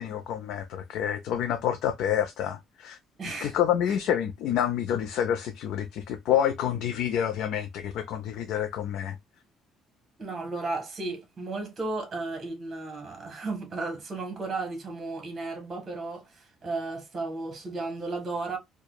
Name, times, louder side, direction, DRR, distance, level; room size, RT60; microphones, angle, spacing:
voice 1, 0.0-3.0 3.4-9.2, left 9 dB, 70° left, 0.4 m, -28 dB
voice 2, 3.2-3.5 3.9-4.0 10.2-18.6, right 3 dB, 30° right, 1.4 m, -34 dB
4.7 x 2.2 x 2.3 m
cardioid pair, 155°, 0 cm